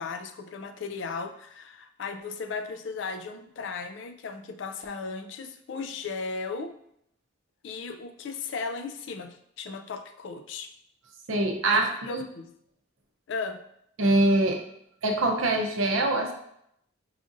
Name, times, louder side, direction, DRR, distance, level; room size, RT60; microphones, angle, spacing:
voice 1, 0.0-6.7 7.6-10.7 11.6-12.5 13.3-13.6, left 4 dB, 60° left, 8 dB, 0.3 m, -36 dB
voice 2, 11.3-12.2 14.0-14.6 15.0-16.3, right 2 dB, 70° right, 3 dB, 0.6 m, -24 dB
4.8 x 2.5 x 2.5 m, 0.74 s
head